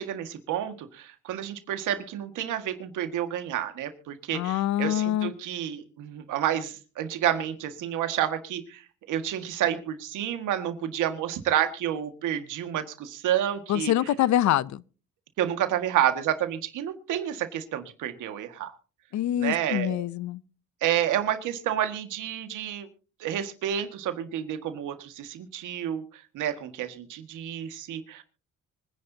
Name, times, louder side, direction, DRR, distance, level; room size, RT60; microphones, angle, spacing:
voice 1, 0.0-8.8 9.1-13.9 15.4-18.7 19.4-20.0 20.8-22.9 23.2-26.0 26.3-28.2, right 10 dB, 85° right, 1.8 m, -29 dB
voice 2, 4.3-5.3 13.7-14.8 19.1-20.4, left 12 dB, 65° left, 0.6 m, -25 dB
25.0 x 10.0 x 2.8 m
cardioid pair, 90°, 30 cm